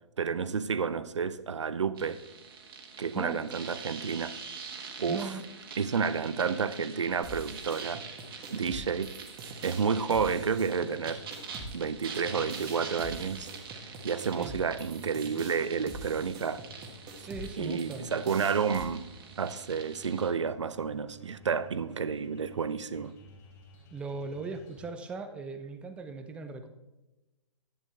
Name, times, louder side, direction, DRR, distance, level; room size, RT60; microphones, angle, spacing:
voice 1, 0.2-2.2 3.0-4.3 5.0-5.3 5.8-8.1 8.5-9.1 9.6-11.2 11.7-13.5 14.0-16.6 17.6-19.1 19.4-23.1, right 6 dB, 70° right, 0.6 m, -30 dB
sound 1, 2.0-20.3, right 5 dB, 45° right, 1.6 m, -45 dB
voice 2, 5.1-5.5 14.3-14.5 17.3-18.1 23.9-26.7, right 4 dB, 5° right, 0.5 m, -38 dB
sound 2, 7.2-18.8, right 2 dB, 25° right, 1.4 m, -45 dB
sound 3, 10.1-24.9, right 1 dB, 15° left, 3.3 m, -54 dB
11.0 x 9.1 x 3.4 m
figure-of-eight pair, 125°, 16 cm